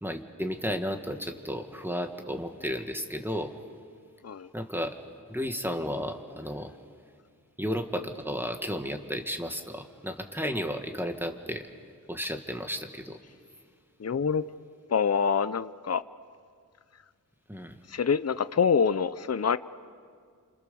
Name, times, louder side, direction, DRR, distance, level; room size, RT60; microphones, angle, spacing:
voice 1, 0.0-3.5 4.5-5.0 5.3-6.7 7.6-11.7 12.1-13.2 17.5-17.8, equal, 5° right, 5 dB, 2.0 m, -33 dB
voice 2, 14.0-14.4 14.9-16.0 17.9-19.6, left 6 dB, 50° left, 15 dB, 0.7 m, -25 dB
29.5 x 26.5 x 7.0 m, 2.1 s
wide cardioid pair, 60°, 34 cm